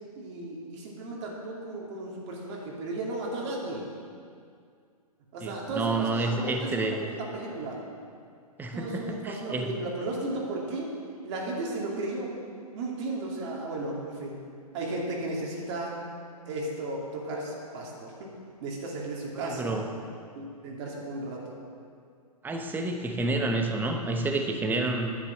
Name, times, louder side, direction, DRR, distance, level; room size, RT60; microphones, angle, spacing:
voice 1, 0.2-3.8 5.3-7.8 8.7-10.9 11.2-12.3 12.7-14.3 14.7-16.0 16.5-18.3 18.6-19.8 20.4-21.6, right 2 dB, 50° right, -2 dB, 2.6 m, -34 dB
voice 2, 5.4-7.0 8.6-9.7 19.3-19.9 22.4-25.2, right 2 dB, 10° right, 4 dB, 0.9 m, -29 dB
9.9 x 7.2 x 7.4 m, 2.3 s
hypercardioid pair, 125°, 19 cm